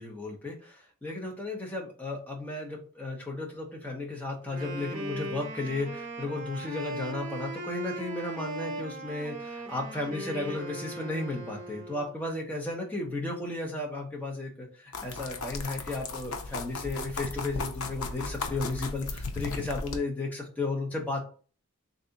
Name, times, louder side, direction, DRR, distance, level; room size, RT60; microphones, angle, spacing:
voice 1, 0.0-21.2, left 2 dB, 5° left, -1 dB, 0.8 m, -34 dB
Wind instrument woodwind instrument, 4.4-12.2, right 2 dB, 35° right, 0.8 m, -39 dB
sound 1, 14.9-20.0, left 3 dB, 75° left, 0.5 m, -36 dB
3.3 x 2.7 x 3.9 m, 0.38 s
head